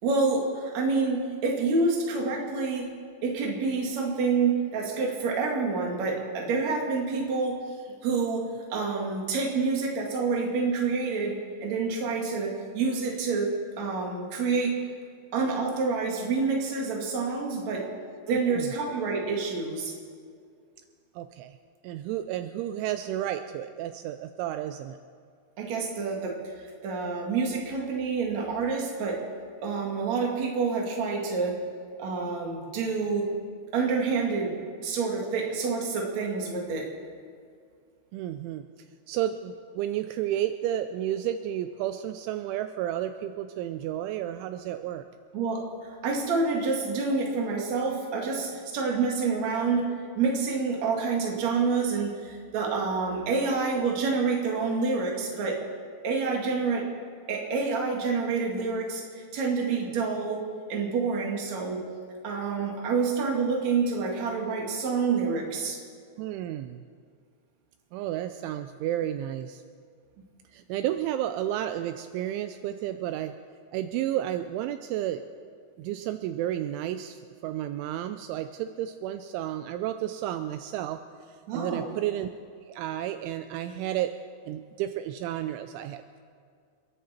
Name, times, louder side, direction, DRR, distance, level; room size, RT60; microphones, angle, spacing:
voice 1, 0.0-2.9 3.2-7.7 8.0-14.7 15.3-17.9 18.3-19.9 25.6-26.4 26.8-29.2 29.6-31.6 32.0-33.3 33.7-34.5 34.8-36.9 45.3-55.6 56.0-56.9 57.3-60.4 60.7-61.8 62.2-65.8 81.5-81.9, right 4 dB, 45° right, -1 dB, 2.7 m, -28 dB
voice 2, 18.3-18.7 21.2-21.6 21.8-25.0 38.1-38.7 39.1-45.1 66.2-66.9 67.9-69.6 70.5-73.4 73.7-75.2 75.8-81.0 81.5-82.3 82.7-84.2 84.5-86.2, right 12 dB, 85° right, 9 dB, 2.9 m, -32 dB
29.5 x 10.5 x 4.4 m, 2.1 s
omnidirectional pair, 5.6 m